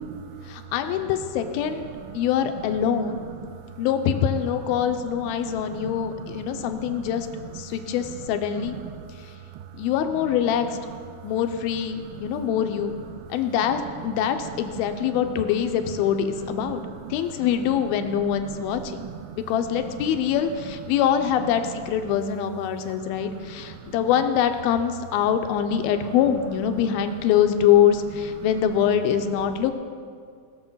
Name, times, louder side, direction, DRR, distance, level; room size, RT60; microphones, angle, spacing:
voice 1, 0.5-3.2 3.8-7.3 7.6-8.8 9.7-10.7 11.2-12.9 13.3-16.8 17.1-19.1 19.5-29.7, left 9 dB, 85° left, 7 dB, 2.6 m, -24 dB
voice 2, 5.4-6.5 6.7-7.6 8.6-9.1 12.1-12.3 13.1-13.2 13.8-14.1 14.4-14.5 14.9-15.0 16.6-17.2 18.0-19.4 20.1-20.2 21.7-21.8 22.1-22.2 23.2-23.8 28.4-28.5, right 9 dB, 80° right, 9 dB, 2.2 m, -40 dB
19.5 x 7.0 x 5.5 m, 2.2 s
omnidirectional pair, 4.3 m